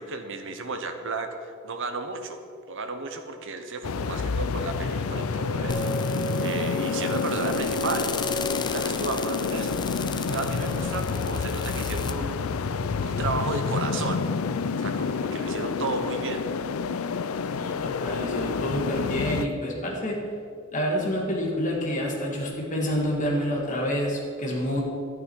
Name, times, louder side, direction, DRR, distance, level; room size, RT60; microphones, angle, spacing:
voice 1, 0.0-2.4 2.7-8.1 8.6-9.8 10.3-12.4 13.0-14.3 14.8-16.4, right 3 dB, 65° right, 6 dB, 1.0 m, -33 dB
sound 1, 3.8-19.5, left 5 dB, 75° left, 0.5 m, -29 dB
sound 2, 5.7-12.1, left 1 dB, 20° left, 0.5 m, -33 dB
voice 2, 17.5-20.2 20.7-24.8, equal, 35° left, -2 dB, 1.8 m, -28 dB
11.5 x 9.1 x 4.6 m, 2.4 s
head